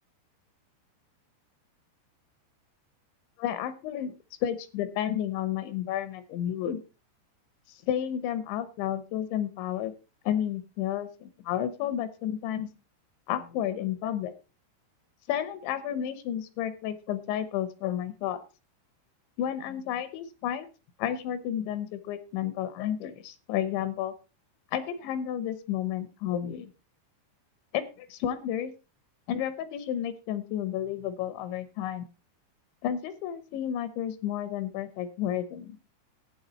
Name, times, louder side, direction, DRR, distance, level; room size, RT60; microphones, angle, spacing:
voice 1, 3.4-4.1 4.4-6.8 7.9-9.9 10.3-12.7 13.3-14.3 15.3-18.4 19.4-20.7 21.0-24.1 24.7-26.7 27.7-28.7 29.3-32.0 32.8-35.8, left 10 dB, 80° left, 12 dB, 3.3 m, -31 dB
12.0 x 8.8 x 4.3 m, 0.32 s
omnidirectional pair, 5.3 m